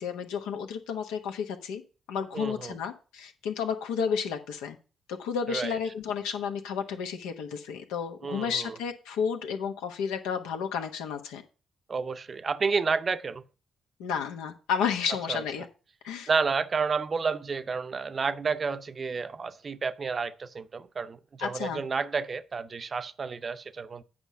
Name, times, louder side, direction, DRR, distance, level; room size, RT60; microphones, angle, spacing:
voice 1, 0.0-1.8 2.1-4.8 5.1-11.4 14.0-15.7 16.0-16.3 21.4-21.8, left 7 dB, 85° left, 1.1 m, -32 dB
voice 2, 2.3-2.7 5.5-5.8 8.2-8.8 11.9-13.4 15.3-15.4 16.3-24.0, right 5 dB, 45° right, 0.6 m, -30 dB
8.8 x 5.1 x 5.5 m
hypercardioid pair, 45°, 0 cm